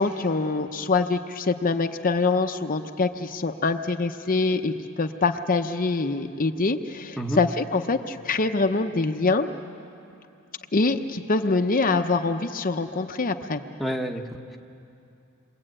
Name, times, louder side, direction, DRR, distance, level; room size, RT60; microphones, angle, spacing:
voice 1, 0.0-9.5 10.7-13.6, left 3 dB, 40° left, 6 dB, 0.8 m, -24 dB
voice 2, 13.8-14.6, equal, ahead, 1 dB, 1.1 m, -29 dB
28.0 x 23.0 x 8.9 m, 2.7 s
head